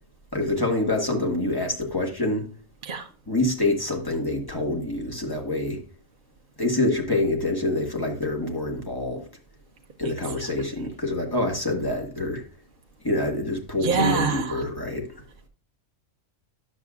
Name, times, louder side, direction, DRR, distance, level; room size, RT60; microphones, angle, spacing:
voice 1, 0.3-2.4 3.3-5.8 6.6-9.2 10.0-12.4 13.0-15.1, left 2 dB, 20° left, 1.6 m, -26 dB
voice 2, 13.8-14.6, right 4 dB, 45° right, 1.0 m, -26 dB
11.0 x 7.3 x 2.4 m
omnidirectional pair, 1.3 m